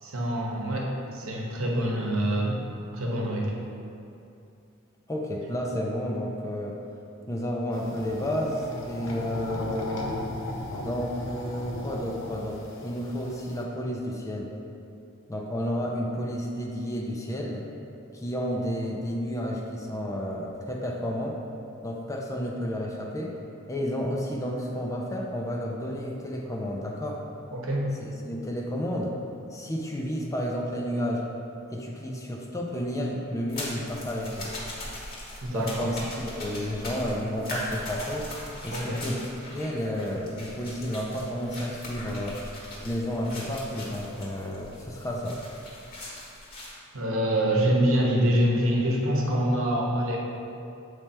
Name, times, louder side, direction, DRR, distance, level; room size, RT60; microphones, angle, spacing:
voice 1, 0.0-2.6 2.9-3.5 27.5-27.9 35.4-35.9 38.7-39.0 46.9-50.2, right 1 dB, 70° right, -2 dB, 1.0 m, -25 dB
voice 2, 5.1-6.8 7.3-10.1 10.8-14.5 15.3-17.7 18.1-21.3 21.8-23.4 23.7-27.2 28.1-29.1 29.5-31.3 31.7-34.5 35.5-38.3 38.6-39.2 39.5-42.4 42.8-45.4, equal, 15° left, -1 dB, 0.5 m, -31 dB
sound 1, 7.7-13.6, left 1 dB, 65° left, 0.7 m, -37 dB
sound 2, 33.5-46.7, left 1 dB, 45° left, 1.3 m, -40 dB
7.2 x 3.3 x 4.3 m, 2.7 s
head